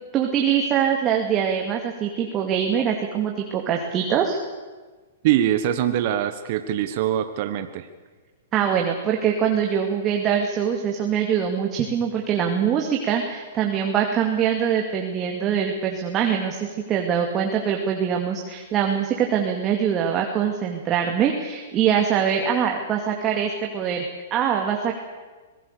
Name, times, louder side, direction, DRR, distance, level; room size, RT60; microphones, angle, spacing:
voice 1, 0.1-4.4 8.5-24.0 24.3-25.0, right 8 dB, 30° right, 2 dB, 2.4 m, -23 dB
voice 2, 5.2-7.9, right 11 dB, 50° right, 9 dB, 1.3 m, -23 dB
26.0 x 18.0 x 6.8 m, 1.3 s
hypercardioid pair, 125°, 0 cm